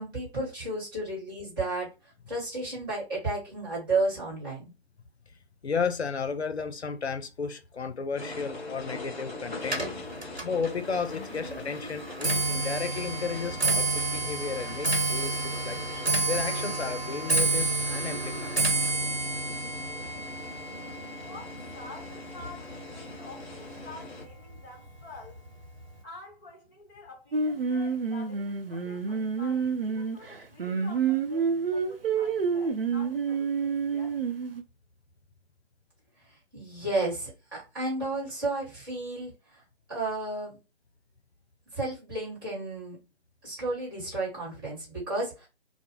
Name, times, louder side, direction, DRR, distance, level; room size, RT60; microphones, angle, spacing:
voice 1, 0.0-1.9 2.3-4.7 36.5-39.6 39.9-40.5 41.7-43.0 43.4-45.5, right 2 dB, 20° right, 1.2 m, -32 dB
voice 2, 5.6-10.1 10.4-18.6, left 5 dB, 90° left, 0.5 m, -33 dB
sound 1, 8.2-24.2, left 2 dB, 45° left, 0.9 m, -42 dB
Clock, 9.6-23.0 23.3-23.8 24.6-24.7 25.0-25.4 25.6-25.7, right 2 dB, 90° right, 1.0 m, -30 dB
voice 3, 21.2-25.4 26.0-34.2, left 2 dB, 15° left, 0.9 m, -48 dB
Singing, 27.3-34.6, right 5 dB, 60° right, 0.5 m, -28 dB
2.3 x 2.0 x 3.0 m
figure-of-eight pair, 140°, 32 cm